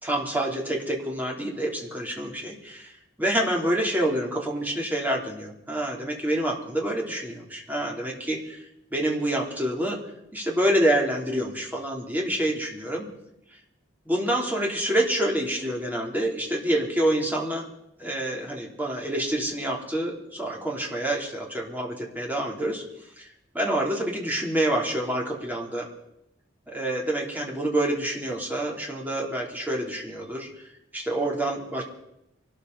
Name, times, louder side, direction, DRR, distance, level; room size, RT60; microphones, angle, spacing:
voice 1, 0.0-2.9 3.2-10.0 10.3-13.1 14.0-17.7 18.0-22.8 23.2-23.3 23.5-25.8 26.7-30.7 30.9-31.8, right 1 dB, 10° right, -2 dB, 3.3 m, -27 dB
24.0 x 13.0 x 4.1 m, 0.83 s
head